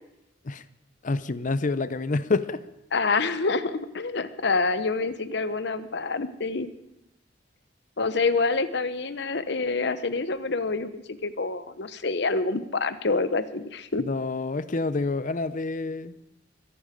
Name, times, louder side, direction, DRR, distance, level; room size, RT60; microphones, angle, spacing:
voice 1, 1.0-2.6 14.0-16.1, left 3 dB, 45° left, 14 dB, 0.7 m, -28 dB
voice 2, 2.9-6.7 8.0-14.0, left 3 dB, 65° left, 12 dB, 1.0 m, -27 dB
22.0 x 11.5 x 5.2 m, 0.85 s
head